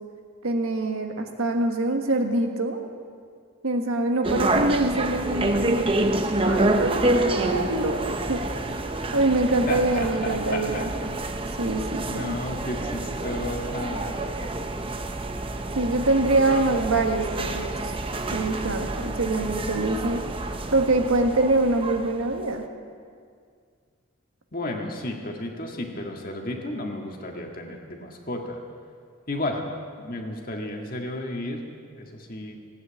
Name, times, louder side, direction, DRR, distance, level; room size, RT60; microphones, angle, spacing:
voice 1, 0.4-2.8 3.6-5.9 6.4-8.4 9.1-10.9 11.6-12.3 15.7-17.9 18.3-20.2 20.7-22.6, right 2 dB, 80° right, 4 dB, 1.5 m, -24 dB
sound 1, 4.2-22.4, right 2 dB, 25° right, 0.7 m, -28 dB
voice 2, 9.7-10.9 12.0-14.2 24.5-28.6 29.3-29.6 30.0-31.6 31.9-32.6, left 1 dB, 40° left, 1 dB, 1.7 m, -33 dB
16.0 x 9.4 x 8.5 m, 2.1 s
head